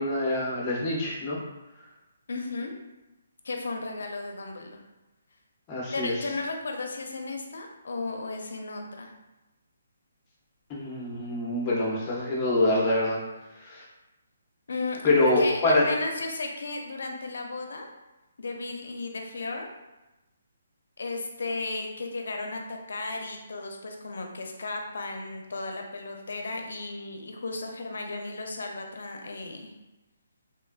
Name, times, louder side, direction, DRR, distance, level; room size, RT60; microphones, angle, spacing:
voice 1, 0.0-1.4 5.7-6.1 10.7-13.2 13.6-13.8 15.0-15.9, left 2 dB, 20° left, -4 dB, 0.5 m, -25 dB
voice 2, 2.3-2.7 3.4-4.8 5.9-9.1 14.7-17.9 18.4-19.7 21.0-29.7, left 3 dB, 75° left, 3 dB, 0.4 m, -34 dB
3.0 x 2.2 x 2.3 m, 1.0 s
hypercardioid pair, 170°, 0 cm